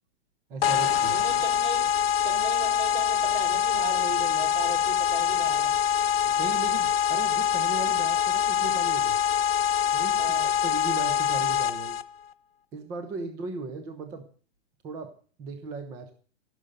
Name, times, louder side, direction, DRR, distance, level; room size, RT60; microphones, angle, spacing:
voice 1, 0.5-1.2 6.4-9.2 9.9-12.0 12.7-14.3 14.8-15.1 15.4-16.1, right 3 dB, 10° right, 0.6 m, -37 dB
sound 1, 0.6-12.0, left 8 dB, 55° left, 0.8 m, -24 dB
voice 2, 1.1-1.9 2.2-5.7 10.2-10.5, right 5 dB, 65° right, 4.2 m, -37 dB
15.0 x 6.7 x 9.2 m
hypercardioid pair, 165°, 36 cm